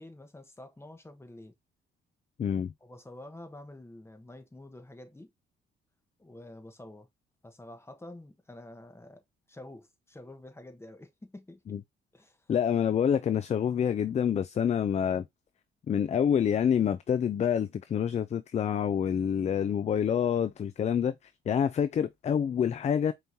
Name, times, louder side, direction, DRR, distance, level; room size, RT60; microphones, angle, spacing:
voice 1, 0.0-1.5 2.8-5.3 6.2-7.1 7.4-11.8 12.1-12.5, left 1 dB, 10° left, 1.1 m, -48 dB
voice 2, 2.4-2.7 11.7-11.8 12.5-15.2 15.9-21.1 21.5-23.1, left 8 dB, 35° left, 0.4 m, -27 dB
5.3 x 3.1 x 2.6 m
cardioid pair, 90°, 20 cm